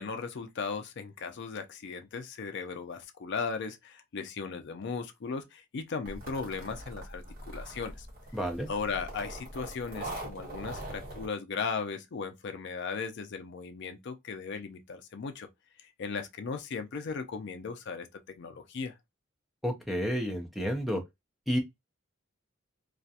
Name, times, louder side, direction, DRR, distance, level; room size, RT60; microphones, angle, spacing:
voice 1, 0.0-8.1 8.7-15.5 15.8-18.9, left 5 dB, 55° left, 0.4 m, -37 dB
sound 1, 6.1-11.3, right 1 dB, 45° right, 1.2 m, -42 dB
voice 2, 8.3-8.7 19.6-21.0 21.5-21.6, equal, ahead, 0.5 m, -30 dB
2.4 x 2.1 x 2.7 m
head